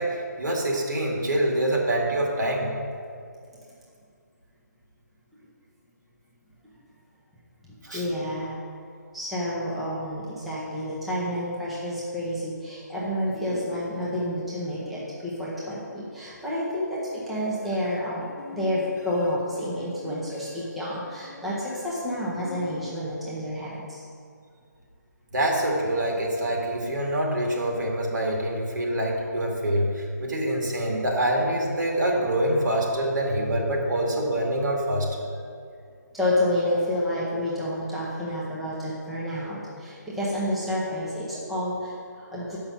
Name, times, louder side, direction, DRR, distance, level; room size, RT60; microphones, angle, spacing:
voice 1, 0.0-2.7 7.8-8.0 25.3-35.3, right 1 dB, 80° right, -1 dB, 2.2 m, -25 dB
voice 2, 7.9-8.6 9.1-24.0 36.1-42.6, left 1 dB, ahead, -10 dB, 0.7 m, -29 dB
sound 1, 17.6-23.5, left 3 dB, 70° left, 0.9 m, -44 dB
6.6 x 5.5 x 7.1 m, 2.2 s
hypercardioid pair, 170°, 10 cm